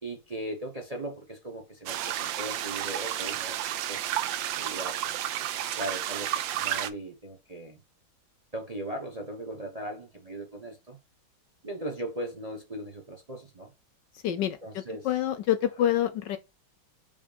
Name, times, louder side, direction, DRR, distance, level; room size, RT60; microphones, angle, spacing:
voice 1, 0.0-5.1 5.4-7.8 8.5-11.0 11.6-13.7 14.6-15.1, right 1 dB, 30° right, 0.8 m, -38 dB
sound 1, 1.9-6.9, right 12 dB, 75° right, 1.3 m, -31 dB
voice 2, 14.1-16.4, left 11 dB, 70° left, 1.1 m, -27 dB
5.4 x 3.4 x 5.1 m
omnidirectional pair, 2.2 m